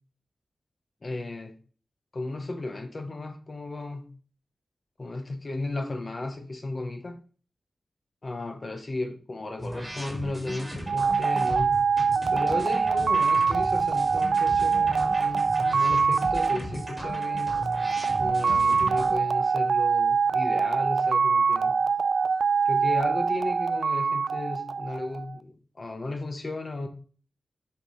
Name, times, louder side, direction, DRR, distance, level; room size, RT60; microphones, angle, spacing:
voice 1, 1.0-1.6 2.1-4.1 5.0-7.2 8.2-11.7 12.3-17.6 18.2-21.8 22.6-26.9, left 2 dB, 35° left, 6 dB, 0.9 m, -34 dB
sound 1, 9.6-19.1, equal, 10° right, 1.8 m, -37 dB
sound 2, 10.9-25.3, right 5 dB, 70° right, 0.3 m, -24 dB
7.1 x 5.5 x 3.2 m, 0.40 s
wide cardioid pair, 160°, 0 cm